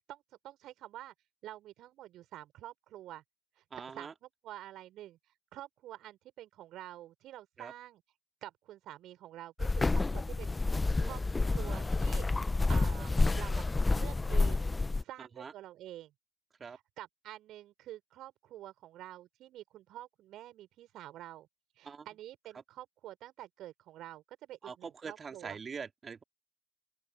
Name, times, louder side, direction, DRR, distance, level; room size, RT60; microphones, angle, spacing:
voice 1, 0.1-1.1 1.4-3.2 3.6-5.2 5.5-8.0 8.4-10.6 11.0-11.2 11.5-12.3 12.7-13.7 13.9-14.7 15.0-16.1 16.6-21.5 21.8-25.6, right 14 dB, 65° right, 5.0 m, -48 dB
voice 2, 3.7-4.1 7.6-7.7 10.7-11.1 11.4-11.9 15.2-15.5 16.6-16.8 21.8-22.1 24.6-26.2, right 5 dB, 40° right, 3.2 m, -44 dB
sound 1, 9.6-15.0, left 3 dB, 25° left, 1.2 m, -29 dB
open air
figure-of-eight pair, 40°, 0 cm